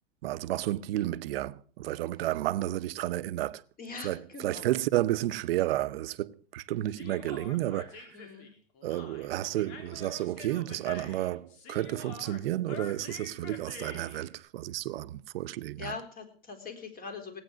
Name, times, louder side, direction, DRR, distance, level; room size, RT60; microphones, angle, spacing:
voice 1, 0.2-3.6 4.0-8.1 8.8-15.9, right 14 dB, 75° right, 0.8 m, -31 dB
voice 2, 3.8-4.7 8.1-8.5 15.8-17.4, left 4 dB, 30° left, 4.0 m, -42 dB
Human voice, 6.9-14.2, left 5 dB, 55° left, 3.5 m, -47 dB
18.0 x 8.9 x 6.2 m
hypercardioid pair, 110°, 29 cm